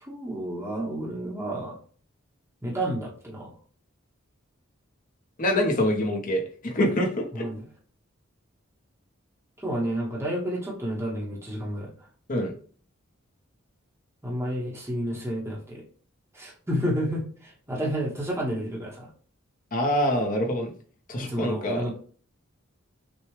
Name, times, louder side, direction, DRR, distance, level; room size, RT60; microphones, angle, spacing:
voice 1, 0.1-1.8 2.6-3.5 7.3-7.6 9.6-11.9 14.2-15.8 16.3-19.1 21.2-21.9, equal, 15° right, -4 dB, 1.0 m, -30 dB
voice 2, 5.4-7.5 12.3-12.5 19.7-20.7 21.1-21.9, left 1 dB, 40° left, 1 dB, 1.0 m, -25 dB
6.2 x 2.3 x 3.1 m, 0.44 s
head